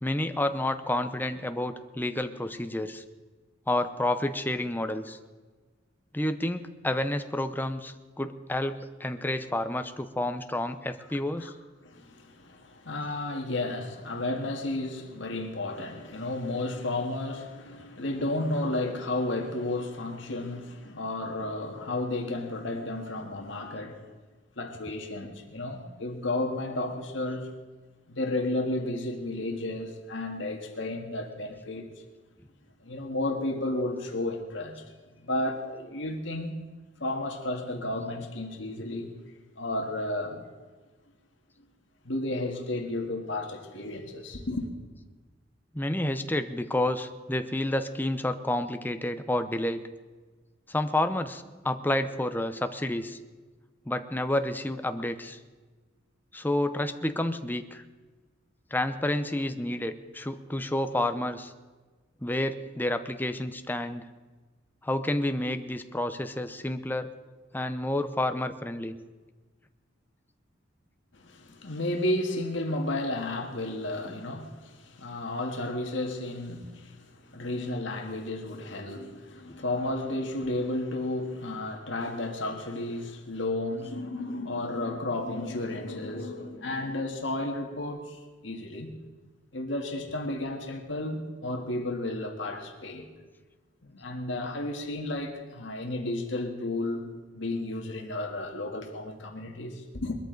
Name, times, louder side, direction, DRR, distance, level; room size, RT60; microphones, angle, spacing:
voice 1, 0.0-3.0 3.7-5.2 6.1-11.5 45.7-49.8 50.7-53.2 53.9-55.4 56.3-57.8 58.7-61.5 62.2-64.0 64.8-67.1 67.5-69.0, left 1 dB, 10° left, 0.7 m, -30 dB
voice 2, 11.8-24.0 24.6-27.5 28.1-31.9 32.8-34.8 35.2-36.6 37.0-39.1 39.6-40.4 42.0-44.7 71.1-88.9 89.5-93.1 93.8-100.2, left 2 dB, 70° left, 1.8 m, -32 dB
21.5 x 13.5 x 4.0 m
head